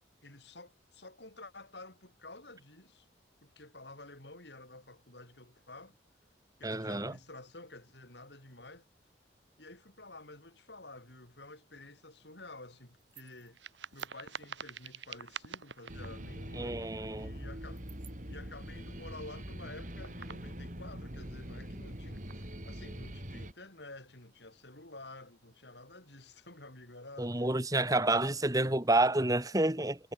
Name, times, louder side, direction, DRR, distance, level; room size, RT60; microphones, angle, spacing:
voice 1, 0.2-3.1 3.4-6.0 6.6-8.9 9.6-13.6 13.9-27.5 27.9-28.7, left 2 dB, 65° left, 6.9 m, -51 dB
voice 2, 6.6-7.1 16.6-17.3 27.2-30.0, right 2 dB, 20° right, 1.9 m, -29 dB
sound 1, 13.0-16.1 17.8-18.1 19.7-20.5 20.9-21.0 22.1-22.6, right 6 dB, 80° right, 3.6 m, -47 dB
sound 2, 15.9-23.5, equal, 45° right, 6.5 m, -43 dB
head